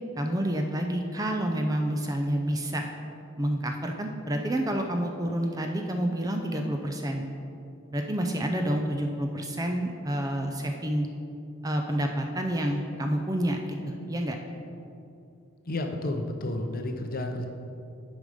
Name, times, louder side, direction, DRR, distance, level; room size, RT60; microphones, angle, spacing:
voice 1, 0.2-2.8 3.4-7.2 7.9-11.1 11.6-14.4, right 1 dB, 15° right, 3 dB, 0.5 m, -29 dB
voice 2, 15.7-17.5, left 1 dB, 40° left, 5 dB, 0.6 m, -31 dB
9.5 x 5.3 x 5.0 m, 2.6 s
head